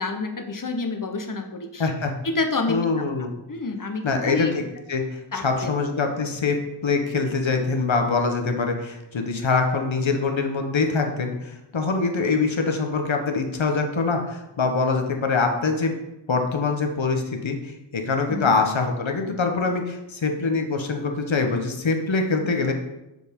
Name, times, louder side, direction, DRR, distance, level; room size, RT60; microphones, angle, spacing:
voice 1, 0.0-1.9 2.2-3.0 3.5-4.5 5.3-5.7 18.3-18.5 22.4-22.5, left 3 dB, 40° left, 6 dB, 1.1 m, -28 dB
voice 2, 1.8-2.1 2.7-3.3 4.0-4.6 4.9-16.0 16.3-22.7, left 4 dB, 70° left, 4 dB, 1.3 m, -24 dB
6.2 x 5.2 x 5.3 m, 0.95 s
wide cardioid pair, 50°, 47 cm